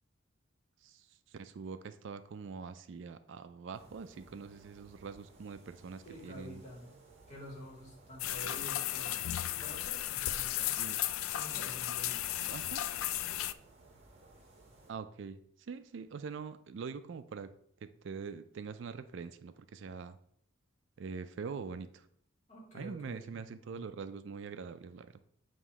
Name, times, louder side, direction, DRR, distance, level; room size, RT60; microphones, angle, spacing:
voice 1, 0.8-6.6 10.8-11.0 12.5-12.8 14.9-17.5 17.8-20.2 21.0-22.1 22.7-25.1, right 5 dB, 60° right, 12 dB, 0.4 m, -44 dB
sound 1, 3.7-14.9, right 2 dB, 30° right, 1.1 m, -59 dB
voice 2, 6.0-7.0 7.3-9.2 9.5-10.7 11.3-12.2 22.5-23.3 23.7-23.9, equal, 35° left, -3 dB, 2.2 m, -48 dB
sound 2, 8.2-13.5, left 13 dB, 85° left, 0.3 m, -35 dB
7.4 x 3.0 x 4.7 m, 0.69 s
head